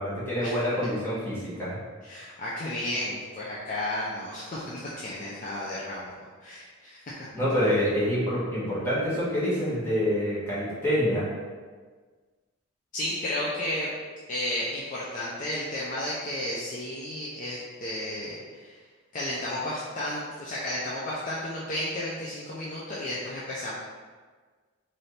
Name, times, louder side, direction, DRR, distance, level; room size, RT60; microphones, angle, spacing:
voice 1, 0.0-1.8 7.3-11.3, equal, 10° left, -11 dB, 1.2 m, -26 dB
voice 2, 2.0-6.1 6.4-7.1 12.9-13.9 14.3-18.8 19.1-23.7, left 1 dB, 35° left, -7 dB, 0.5 m, -33 dB
4.1 x 2.7 x 3.3 m, 1.5 s
head